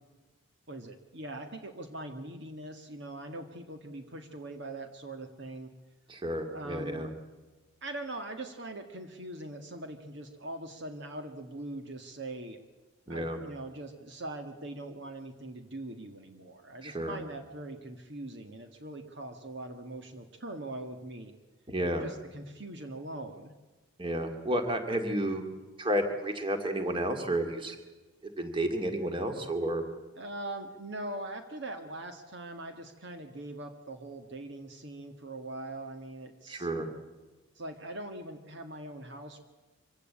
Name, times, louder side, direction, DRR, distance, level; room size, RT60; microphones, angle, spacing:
voice 1, 0.7-5.7 6.5-7.1 7.8-12.6 13.1-21.3 22.0-23.5 30.2-36.7 37.6-39.4, right 1 dB, 55° right, 6 dB, 1.7 m, -42 dB
voice 2, 6.1-7.1 13.1-13.4 16.8-17.2 21.7-22.1 24.0-25.4 25.8-27.8 28.2-29.8 36.5-36.9, right 1 dB, 25° right, 6 dB, 2.2 m, -31 dB
25.0 x 16.5 x 8.6 m, 1.2 s
head